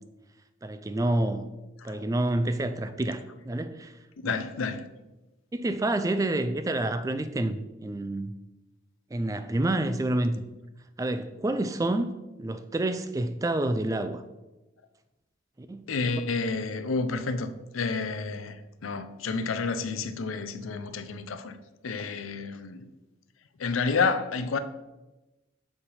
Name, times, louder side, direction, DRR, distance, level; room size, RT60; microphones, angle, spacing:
voice 1, 0.6-1.5 1.8-3.9 4.2-4.4 5.5-8.3 9.1-10.4 11.0-12.1 12.4-14.2 15.6-16.1, right 1 dB, 15° right, 0.3 m, -28 dB
voice 2, 4.2-4.9 15.9-21.6 21.8-22.8 23.6-24.6, left 4 dB, 85° left, 0.5 m, -30 dB
7.2 x 3.4 x 5.4 m
head